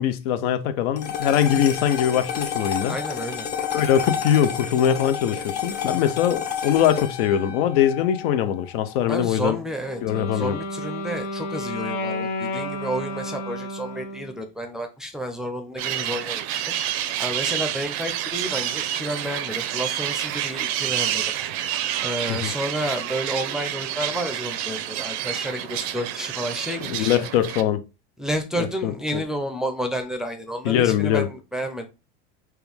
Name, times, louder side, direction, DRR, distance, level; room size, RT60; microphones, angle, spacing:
voice 1, 0.0-2.9 3.7-9.6 10.0-10.6 22.3-22.5 26.8-27.8 28.6-29.2 30.6-31.3, left 10 dB, 70° left, 0.7 m, -22 dB
sound 1, 1.0-9.5, left 8 dB, 30° left, 0.7 m, -30 dB
voice 2, 2.9-3.5 9.1-21.3 22.0-27.2 28.2-31.9, equal, ahead, 0.6 m, -31 dB
Wind instrument woodwind instrument, 9.8-14.4, left 1 dB, 90° left, 1.1 m, -31 dB
sound 2, 15.8-27.6, right 11 dB, 60° right, 0.6 m, -28 dB
4.5 x 2.3 x 3.4 m
supercardioid pair, 120°, 31 cm